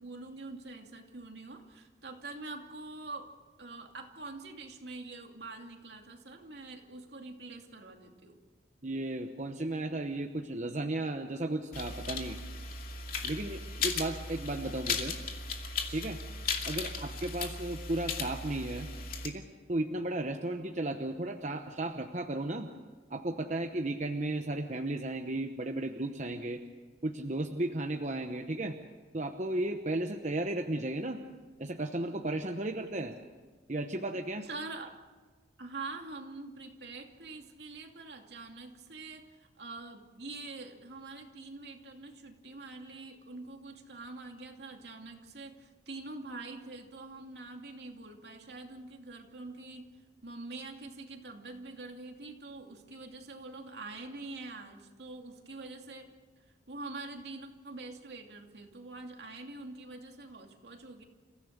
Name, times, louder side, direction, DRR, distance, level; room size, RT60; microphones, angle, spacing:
voice 1, 0.0-3.3 3.6-8.4 34.4-34.9 35.6-49.9 50.2-56.1 56.7-61.0, right 3 dB, 70° right, 3 dB, 2.6 m, -45 dB
voice 2, 8.8-12.4 13.2-15.2 15.9-16.2 16.6-18.9 19.2-19.4 19.7-22.7 23.1-26.6 27.0-28.8 29.1-31.2 31.6-33.1 33.7-34.5, right 2 dB, 40° right, 4 dB, 1.0 m, -34 dB
sound 1, 11.7-19.3, left 4 dB, 50° left, 2.5 m, -37 dB
30.0 x 16.0 x 6.7 m, 1.4 s
head